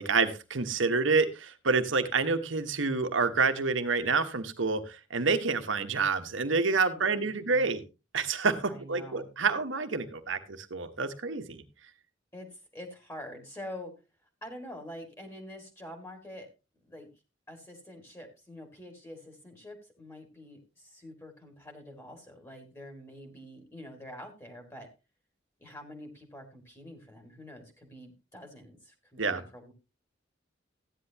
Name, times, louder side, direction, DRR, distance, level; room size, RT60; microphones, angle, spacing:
voice 1, 0.0-7.8 8.1-11.6 29.2-29.4, right 4 dB, 85° right, 8 dB, 1.3 m, -28 dB
voice 2, 6.9-7.8 8.7-9.3 12.3-13.9 14.4-16.5 16.8-17.1 17.5-24.9 25.6-29.7, left 1 dB, 15° left, 4 dB, 2.2 m, -46 dB
14.5 x 10.0 x 2.9 m, 0.28 s
head